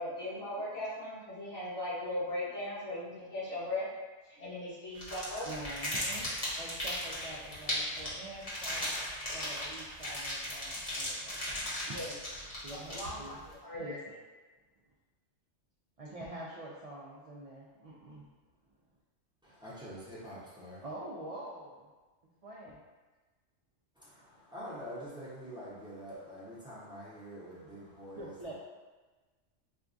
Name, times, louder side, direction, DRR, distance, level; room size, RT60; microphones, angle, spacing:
voice 1, 0.0-3.9 4.3-5.5 11.8-12.1 12.7-14.0, left 1 dB, 85° left, -14 dB, 2.1 m, -38 dB
sound 1, 5.0-13.4, left 1 dB, 35° left, 1.0 m, -37 dB
voice 2, 5.4-8.9 9.3-11.9 12.6-13.4 13.7-14.2 16.0-18.3 20.8-21.9 22.4-22.8 28.1-28.5, right 1 dB, 70° right, -5 dB, 0.3 m, -46 dB
voice 3, 19.4-20.8 24.0-28.5, equal, 5° right, -9 dB, 0.7 m, -46 dB
4.4 x 2.3 x 2.5 m, 1.3 s
omnidirectional pair, 1.2 m